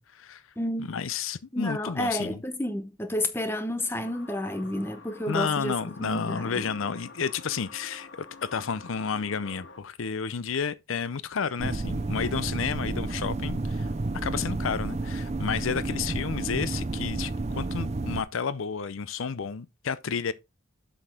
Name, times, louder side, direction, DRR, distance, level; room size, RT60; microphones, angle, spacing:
voice 1, 0.0-0.4 0.8-2.4 5.3-8.1 8.4-13.9 14.2-20.3, left 6 dB, 80° left, 0.6 m, -31 dB
voice 2, 0.6-0.9 1.5-5.7 6.0-6.6, left 1 dB, 10° left, 0.8 m, -30 dB
sound 1, 3.9-9.8, left 3 dB, 60° left, 1.1 m, -47 dB
sound 2, 11.6-18.2, right 2 dB, 30° right, 0.5 m, -31 dB
7.9 x 6.3 x 3.6 m
head